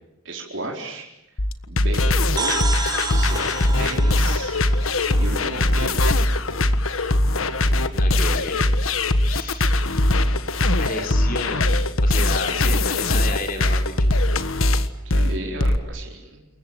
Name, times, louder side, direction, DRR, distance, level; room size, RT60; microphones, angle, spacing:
voice 1, 0.2-1.1 1.7-2.8 3.1-3.4 3.8-4.6 5.2-6.4 12.2-12.6 15.1-16.5, right 1 dB, 65° right, 0 dB, 4.5 m, -34 dB
sound 1, 1.4-15.8, left 1 dB, 90° left, 1.5 m, -20 dB
sound 2, 2.4-6.0, right 4 dB, 20° right, 3.9 m, -30 dB
voice 2, 3.1-4.3 8.0-8.6 9.0-9.7 10.8-14.2, left 2 dB, 45° left, 4 dB, 4.7 m, -33 dB
28.5 x 22.0 x 9.1 m, 0.87 s
head